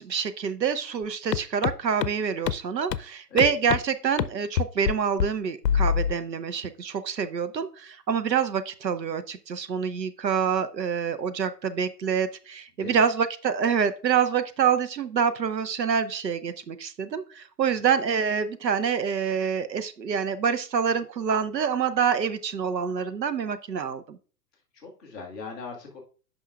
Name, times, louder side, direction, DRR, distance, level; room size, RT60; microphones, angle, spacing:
voice 1, 0.0-24.2, right 7 dB, 85° right, 12 dB, 0.9 m, -26 dB
sound 1, 1.3-1.4 1.6-1.7 2.0-2.1 2.5-2.6 2.9-3.0 3.4-3.8 4.2-4.3 4.6-4.9 5.2-5.3 5.6-6.1, left 9 dB, 85° left, 0.6 m, -23 dB
voice 2, 24.7-26.0, left 4 dB, ahead, -12 dB, 0.3 m, -39 dB
9.0 x 5.5 x 2.4 m, 0.38 s
figure-of-eight pair, 110°, 49 cm